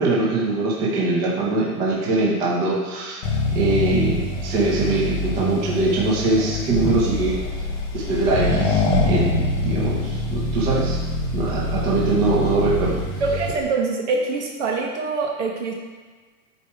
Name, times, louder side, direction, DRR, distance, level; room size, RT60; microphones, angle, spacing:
voice 1, 0.0-3.2 3.5-7.4 7.9-11.0 11.3-13.0, right 2 dB, 20° right, -4 dB, 1.1 m, -22 dB
Accelerating revving vroom, 3.2-13.6, left 2 dB, 35° left, 1.1 m, -24 dB
voice 2, 13.2-15.7, right 3 dB, 45° right, 0 dB, 1.1 m, -24 dB
12.0 x 4.8 x 3.4 m, 1.4 s
supercardioid pair, 175°, 48 cm